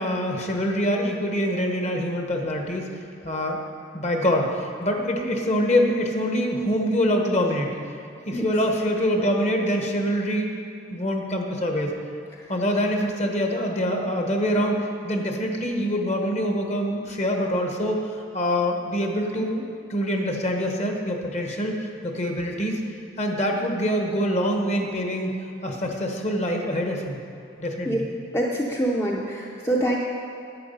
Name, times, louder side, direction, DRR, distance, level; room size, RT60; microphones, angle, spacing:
voice 1, 0.0-2.9 3.2-3.6 3.9-7.7 8.3-10.5 10.9-11.9 12.5-18.0 18.3-22.8 23.2-25.3 25.6-27.2 27.6-28.1, equal, 35° left, 2 dB, 1.1 m, -25 dB
voice 2, 28.3-30.0, right 1 dB, 15° left, -2 dB, 0.6 m, -25 dB
10.5 x 8.5 x 5.4 m, 2.6 s
head